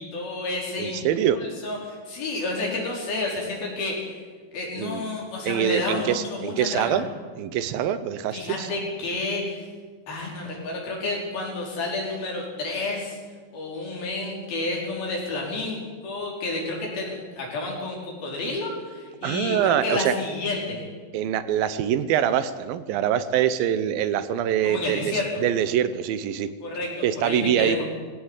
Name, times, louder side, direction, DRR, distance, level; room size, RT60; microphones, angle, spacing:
voice 1, 0.0-4.2 4.5-7.0 8.3-9.7 10.1-13.2 13.5-20.8 24.6-25.4 26.6-26.9 27.2-27.8, left 2 dB, 90° left, -2 dB, 6.5 m, -30 dB
voice 2, 0.8-1.4 4.8-5.0 5.5-7.0 7.4-8.7 19.2-20.1 21.1-25.1 25.4-26.5 27.0-27.8, right 10 dB, 80° right, 13 dB, 2.7 m, -24 dB
20.0 x 16.5 x 8.2 m, 1.5 s
omnidirectional pair, 4.1 m